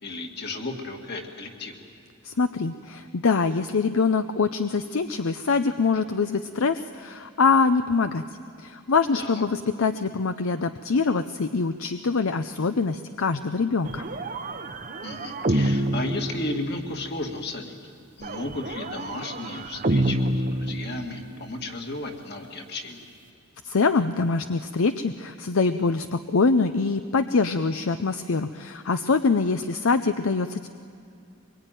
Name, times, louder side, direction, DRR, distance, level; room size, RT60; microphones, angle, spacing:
voice 1, 0.0-1.8 9.2-9.4 15.0-17.7 18.2-23.0, left 2 dB, 45° left, 3 dB, 2.2 m, -34 dB
voice 2, 2.2-8.2 8.6-14.0 23.6-30.7, left 4 dB, 65° left, 10 dB, 0.6 m, -24 dB
sound 1, 13.8-17.1 18.2-21.5, right 1 dB, 35° right, 0.8 m, -28 dB
24.0 x 22.0 x 9.1 m, 2.4 s
head